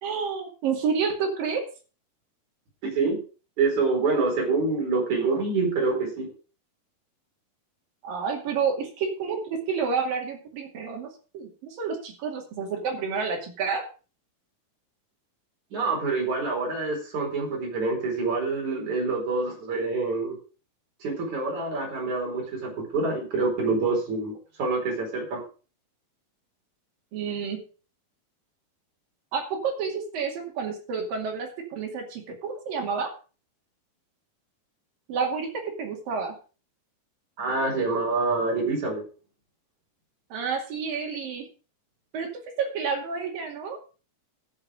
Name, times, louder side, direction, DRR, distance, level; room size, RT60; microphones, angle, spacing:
voice 1, 0.0-1.6 8.0-11.1 11.3-13.8 27.1-27.6 29.3-33.1 35.1-36.4 40.3-41.4 42.1-42.3 42.6-43.8, right 5 dB, 65° right, 2 dB, 3.9 m, -29 dB
voice 2, 2.8-3.2 3.6-6.3 15.7-20.4 21.0-25.4 37.4-39.0, right 3 dB, 50° right, 1 dB, 5.5 m, -26 dB
14.5 x 7.3 x 5.0 m, 0.36 s
omnidirectional pair, 4.5 m